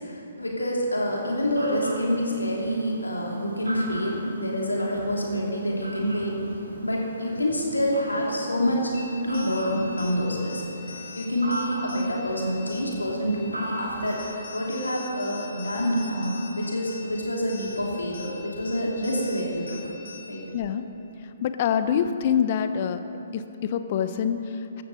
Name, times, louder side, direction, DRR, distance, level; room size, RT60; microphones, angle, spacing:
voice 1, 0.0-6.4 6.8-8.9 9.2-19.8 20.3-20.4, equal, 80° left, -2 dB, 3.0 m, -27 dB
Fowl, 0.9-14.1, right 1 dB, 80° right, 2.4 m, -39 dB
sound 1, 8.9-20.5, left 4 dB, 60° left, 1.7 m, -44 dB
voice 2, 20.5-20.8 21.4-23.0 23.3-24.8, left 8 dB, 40° left, 10 dB, 0.7 m, -25 dB
15.0 x 13.5 x 4.1 m, 3.0 s
figure-of-eight pair, 125°, 0 cm